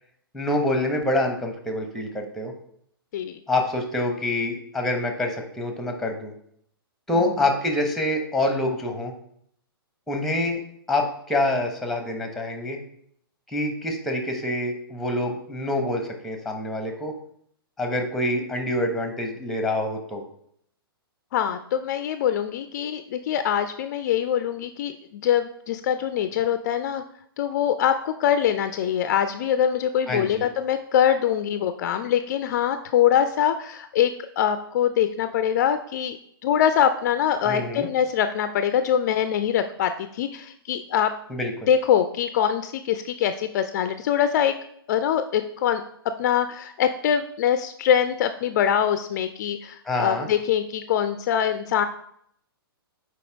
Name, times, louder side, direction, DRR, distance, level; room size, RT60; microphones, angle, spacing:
voice 1, 0.3-2.5 3.5-6.3 7.1-9.1 10.1-10.6 10.9-12.8 13.5-17.1 17.8-20.2 30.1-30.4 37.4-37.9 41.3-41.5 49.8-50.3, left 1 dB, ahead, 4 dB, 1.0 m, -26 dB
voice 2, 21.3-27.0 27.4-36.2 36.4-41.1 41.7-44.5 44.9-45.8 46.2-51.8, left 9 dB, 45° left, 10 dB, 0.4 m, -23 dB
6.9 x 4.7 x 3.4 m, 0.68 s
figure-of-eight pair, 120°, 13 cm